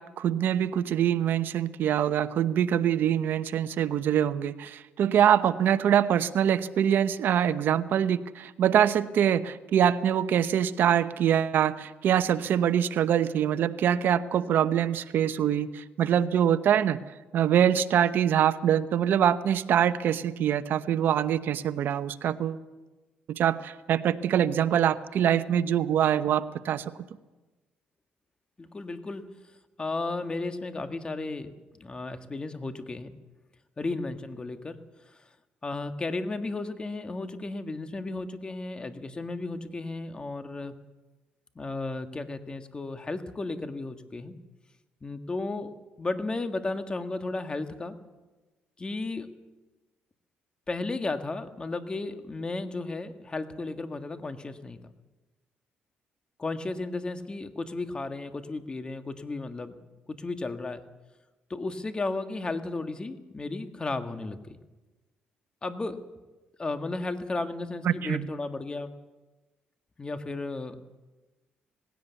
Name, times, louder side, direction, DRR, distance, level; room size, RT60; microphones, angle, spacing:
voice 1, 0.0-17.0 17.3-22.6 23.3-26.8 67.8-68.3, right 9 dB, 70° right, 12 dB, 0.9 m, -24 dB
voice 2, 28.6-29.3 29.8-33.1 33.8-34.8 35.6-40.7 41.5-44.3 45.0-45.7 46.0-48.0 48.8-49.3 50.7-54.8 56.4-59.8 60.1-60.8 61.5-64.6 65.6-66.0 66.6-68.9 70.0-70.8, left 3 dB, 25° left, 9 dB, 1.6 m, -34 dB
19.0 x 16.5 x 8.2 m, 1.2 s
cardioid pair, 90°, 4 cm